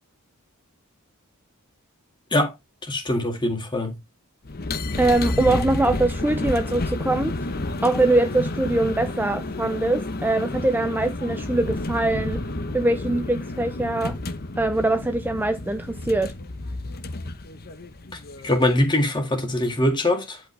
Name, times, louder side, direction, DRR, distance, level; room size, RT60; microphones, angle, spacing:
voice 1, 2.8-4.0 18.1-20.4, left 1 dB, 20° left, 1.9 m, -23 dB
sound 1, 4.4-18.9, left 2 dB, 45° left, 0.9 m, -30 dB
voice 2, 5.0-7.3 7.8-12.5 12.7-14.2 14.6-16.3, right 2 dB, 10° right, 0.5 m, -22 dB
10.5 x 5.3 x 3.3 m
head